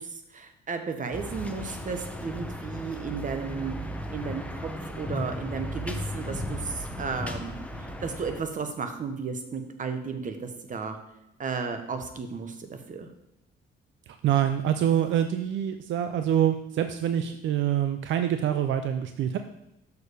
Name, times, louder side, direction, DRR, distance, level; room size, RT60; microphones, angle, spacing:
voice 1, 0.0-3.7 4.1-4.7 5.0-11.0 11.4-13.1, right 5 dB, 40° right, 6 dB, 1.0 m, -34 dB
sound 1, 1.1-8.4, equal, 5° left, 0.8 m, -35 dB
voice 2, 14.1-19.4, right 10 dB, 75° right, 8 dB, 0.5 m, -25 dB
6.5 x 4.7 x 4.9 m, 0.87 s
cardioid pair, 90°, 20 cm